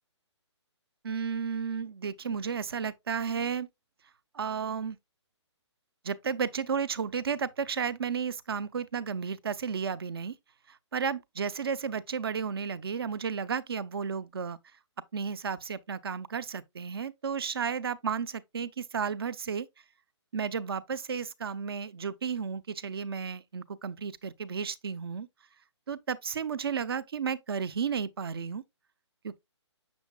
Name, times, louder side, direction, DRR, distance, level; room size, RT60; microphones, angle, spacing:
voice 1, 1.0-3.7 4.3-5.0 6.0-10.3 10.7-14.6 15.1-19.7 20.3-25.3 25.9-28.6 29.2-29.4, right 6 dB, 55° right, 0.7 m, -33 dB
7.4 x 6.7 x 2.3 m
hypercardioid pair, 170°, 15 cm